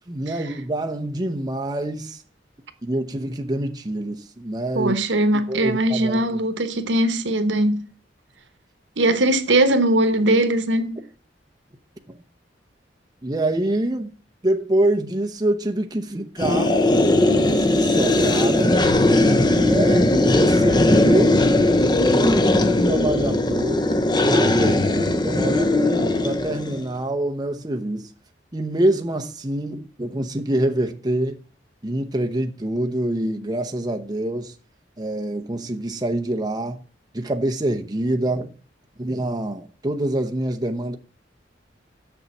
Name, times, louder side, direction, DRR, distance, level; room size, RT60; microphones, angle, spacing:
voice 1, 0.1-2.2 2.8-4.9 5.5-6.3 13.2-14.1 14.4-16.7 17.3-18.8 19.5-21.4 21.9-25.7 26.2-28.1 28.5-31.4 31.8-34.5 35.0-36.8 37.1-38.5 39.0-41.0, right 1 dB, 25° right, 0.9 m, -25 dB
voice 2, 4.7-7.8 9.0-11.0, right 1 dB, 80° right, 1.1 m, -20 dB
sound 1, 16.4-26.8, left 1 dB, 25° left, 0.7 m, -18 dB
7.0 x 6.7 x 7.1 m
head